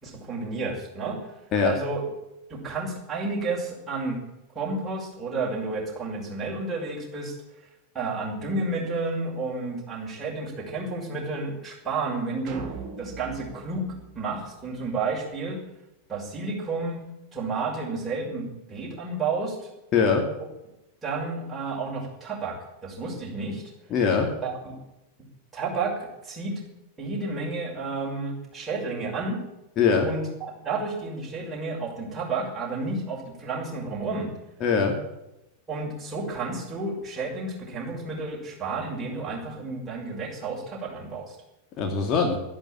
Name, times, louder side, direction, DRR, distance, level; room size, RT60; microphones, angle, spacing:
voice 1, 0.0-1.2 1.6-2.0 2.5-4.2 4.5-7.3 7.9-12.6 13.0-13.9 14.1-15.6 16.1-17.0 17.3-19.7 21.0-22.5 22.8-23.6 24.4-24.8 25.5-26.5 27.0-29.4 30.0-34.3 35.7-41.4, right 3 dB, 15° right, -4 dB, 6.0 m, -31 dB
sound 1, 12.5-14.9, right 5 dB, 35° right, 3.7 m, -40 dB
voice 2, 19.9-20.2 23.9-24.3 29.8-30.1 34.6-35.0 41.8-42.4, left 5 dB, 35° left, 2 dB, 2.5 m, -21 dB
12.5 x 11.0 x 9.1 m, 0.92 s
figure-of-eight pair, 90°, 0 cm